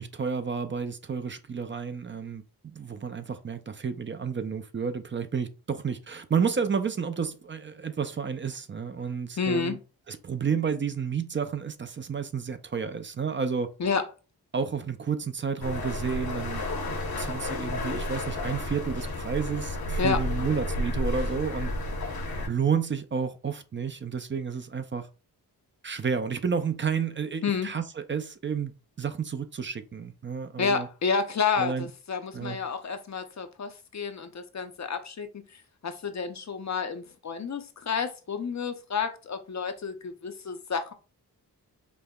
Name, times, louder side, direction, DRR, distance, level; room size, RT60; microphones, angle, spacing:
voice 1, 0.0-9.8 10.1-13.7 14.5-21.7 22.5-25.1 25.8-28.7 29.0-30.9 31.6-31.9 32.3-32.6, right 6 dB, 30° right, 0.4 m, -31 dB
voice 2, 9.4-9.8 13.8-14.0 20.0-20.2 27.4-27.7 30.6-40.9, left 5 dB, 45° left, 0.5 m, -30 dB
sound 1, 15.6-22.5, left 1 dB, 65° left, 1.0 m, -31 dB
5.2 x 2.1 x 2.2 m
cardioid pair, 55°, 40 cm